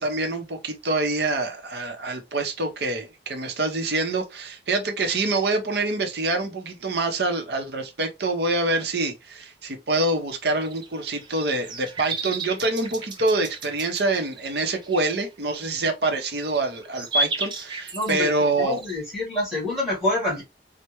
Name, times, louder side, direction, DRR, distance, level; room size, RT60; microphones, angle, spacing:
voice 1, 0.0-18.8, right 2 dB, 65° right, 0.7 m, -26 dB
sound 1, 10.1-18.9, right 2 dB, 25° right, 0.4 m, -34 dB
voice 2, 17.9-20.4, left 1 dB, ahead, 2.0 m, -27 dB
3.3 x 2.1 x 2.9 m
head